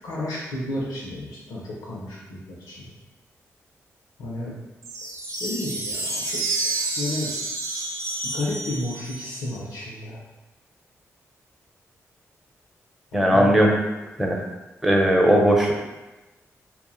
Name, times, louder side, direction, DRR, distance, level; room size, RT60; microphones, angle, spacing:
voice 1, 0.0-2.9 4.2-4.6 5.4-6.4 6.8-7.3 8.3-10.2 13.1-13.6, left 1 dB, 85° left, -6 dB, 0.6 m, -32 dB
sound 1, 4.8-9.6, right 2 dB, 60° right, 0.5 m, -29 dB
voice 2, 13.1-13.7 14.2-14.4 14.8-15.7, equal, 5° right, -1 dB, 0.7 m, -18 dB
2.4 x 2.0 x 3.8 m, 1.1 s
supercardioid pair, 50°, 6 cm